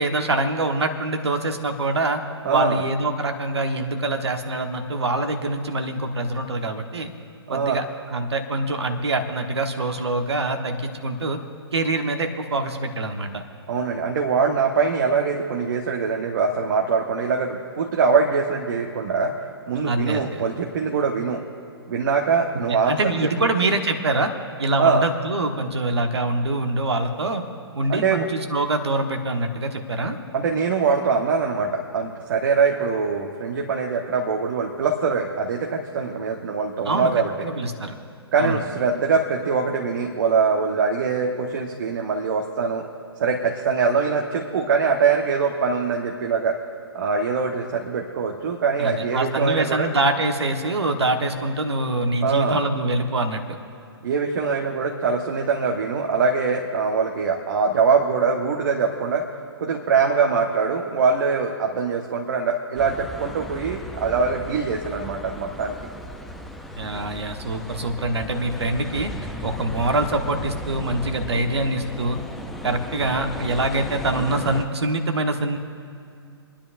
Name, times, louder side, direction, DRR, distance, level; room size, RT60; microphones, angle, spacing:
voice 1, 0.0-2.2 2.5-7.1 7.5-11.4 11.7-13.4 19.9-20.4 22.7-24.3 24.6-27.4 27.7-30.2 36.8-37.1 37.4-38.0 38.4-38.6 48.8-53.4 66.8-69.1 69.4-72.2 72.6-75.6, right 2 dB, 75° right, 5 dB, 1.2 m, -24 dB
voice 2, 2.4-2.8 7.5-7.8 13.7-19.3 19.7-21.4 21.9-23.5 24.8-25.0 27.9-28.3 30.3-37.3 38.3-42.8 43.2-46.6 46.9-49.9 52.2-52.6 54.0-59.3 59.6-65.7, right 5 dB, 50° right, 1 dB, 1.2 m, -23 dB
sound 1, 62.8-74.6, left 1 dB, ahead, 0.5 m, -36 dB
29.0 x 10.0 x 2.6 m, 2.4 s
figure-of-eight pair, 130°, 14 cm